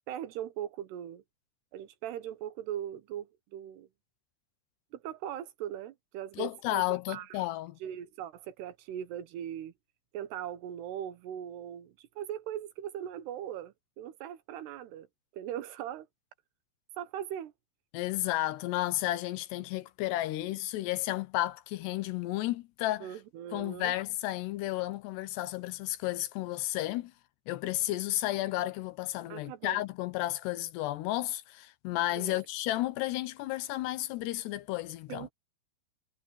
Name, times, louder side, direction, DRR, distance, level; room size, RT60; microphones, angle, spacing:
voice 1, 0.1-1.2 1.7-3.9 4.9-7.4 7.8-9.7 10.1-15.1 15.3-16.1 17.0-17.5 23.0-23.9 29.3-29.8 32.1-32.4 35.1-35.3, right 10 dB, 80° right, 3.3 m, -40 dB
voice 2, 6.4-7.8 17.9-23.1 23.5-27.1 27.5-35.3, left 16 dB, 85° left, 3.1 m, -32 dB
omnidirectional pair, 4.7 m